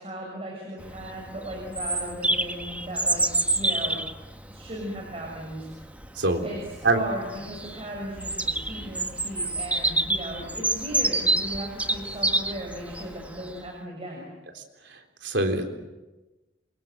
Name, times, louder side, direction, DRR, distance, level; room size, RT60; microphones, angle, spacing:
voice 1, 0.0-3.3 3.5-4.0 4.5-5.9 6.4-6.6 6.9-14.2, right 1 dB, 35° right, -1 dB, 6.4 m, -36 dB
Bird vocalization bird call bird song, 0.8-13.5, right 2 dB, 10° right, 1.4 m, -28 dB
voice 2, 6.1-6.5 6.8-7.0 14.6-15.6, right 2 dB, 75° right, 4 dB, 3.7 m, -25 dB
27.5 x 24.5 x 7.9 m, 1.1 s
head